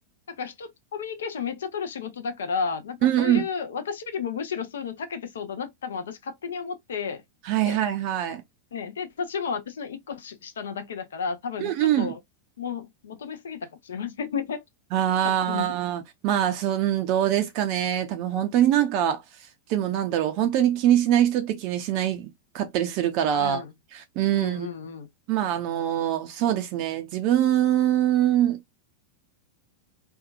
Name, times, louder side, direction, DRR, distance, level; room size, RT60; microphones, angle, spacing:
voice 1, 0.3-7.2 7.6-7.8 8.7-12.2 12.6-14.6 15.2-15.8 23.3-23.7 24.3-25.1, left 6 dB, 65° left, 0.5 m, -33 dB
voice 2, 3.0-3.5 7.5-8.4 11.6-12.1 14.9-19.2 19.7-22.3 22.5-23.6 23.9-24.7 25.3-28.6, right 11 dB, 45° right, 0.4 m, -23 dB
2.7 x 2.3 x 2.3 m
figure-of-eight pair, 90°, 0 cm